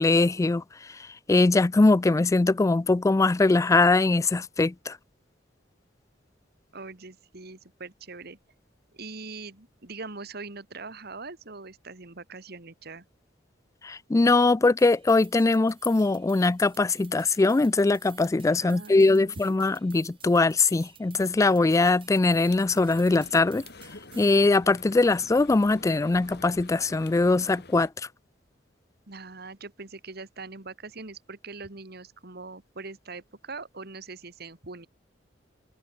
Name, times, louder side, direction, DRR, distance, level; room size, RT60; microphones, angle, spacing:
voice 1, 0.0-5.0 13.8-23.6 24.2-27.9, left 3 dB, 15° left, 0.3 m, -22 dB
voice 2, 6.7-8.4 8.9-13.1 18.6-19.6 29.1-34.9, right 3 dB, 60° right, 2.2 m, -42 dB
sound 1, 14.8-24.4, right 9 dB, 30° right, 2.2 m, -53 dB
sound 2, 22.2-27.9, left 3 dB, 60° left, 3.9 m, -48 dB
head